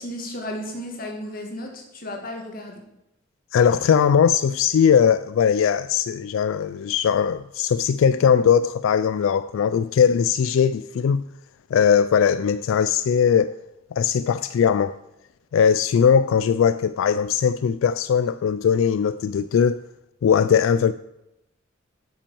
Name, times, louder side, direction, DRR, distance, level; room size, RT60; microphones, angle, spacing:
voice 1, 0.0-2.8, left 1 dB, 45° left, 1.9 m, -34 dB
voice 2, 3.5-11.2 11.7-13.5 13.9-15.0 15.5-19.8 20.2-20.9, left 7 dB, 85° left, 0.3 m, -19 dB
8.8 x 6.0 x 6.9 m
head